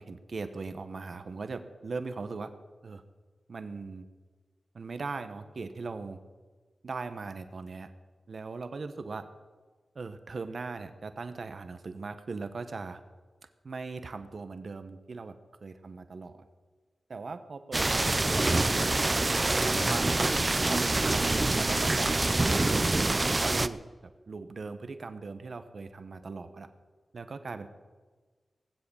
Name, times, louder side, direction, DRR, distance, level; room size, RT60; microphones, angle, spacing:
voice 1, 0.0-2.5 2.8-3.0 3.5-4.0 4.7-6.2 6.8-7.9 8.3-9.2 9.9-13.0 13.6-15.3 15.6-16.4 17.1-20.0 20.7-23.8 24.3-26.7 27.1-27.7, right 4 dB, 70° right, 9 dB, 1.2 m, -39 dB
sound 1, 17.7-23.7, right 2 dB, 35° right, 0.6 m, -26 dB
19.5 x 7.8 x 7.2 m, 1.4 s
cardioid pair, 55°, 0 cm